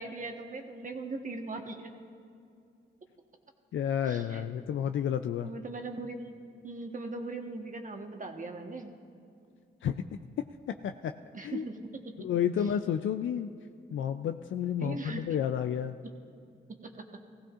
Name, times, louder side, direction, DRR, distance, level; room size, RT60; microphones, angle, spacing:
voice 1, 0.0-1.9 4.1-4.5 5.4-8.9 11.3-11.7 12.0-12.1 14.8-15.3 16.8-16.9, right 3 dB, 40° right, 4 dB, 1.3 m, -39 dB
voice 2, 3.7-5.5 9.8-10.0 10.4-11.1 11.4-11.7 12.2-13.5 13.9-16.0, left 9 dB, 75° left, 8 dB, 0.4 m, -31 dB
16.5 x 15.5 x 2.5 m, 2.5 s
cardioid pair, 55°, 20 cm